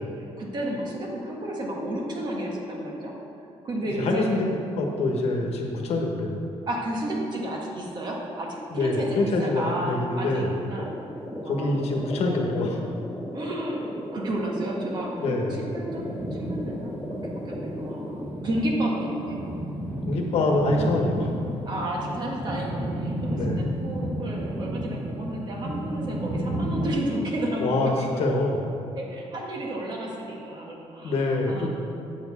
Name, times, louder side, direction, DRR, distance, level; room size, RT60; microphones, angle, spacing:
voice 1, 0.1-3.1 3.6-4.5 6.7-10.9 11.4-12.0 13.3-16.9 17.2-19.5 21.7-28.2 28.9-31.7, right 1 dB, 40° right, -2 dB, 1.5 m, -32 dB
voice 2, 3.9-4.5 4.8-6.4 8.7-10.5 11.4-12.8 15.2-15.6 20.1-21.3 23.3-23.6 27.6-28.6 31.0-31.7, left 2 dB, 65° left, 1 dB, 1.2 m, -25 dB
sound 1, 10.8-18.3, equal, ahead, 0.6 m, -37 dB
sound 2, 15.9-26.9, right 1 dB, 15° right, 0.9 m, -32 dB
8.0 x 4.3 x 7.1 m, 2.6 s
cardioid pair, 135°, 11 cm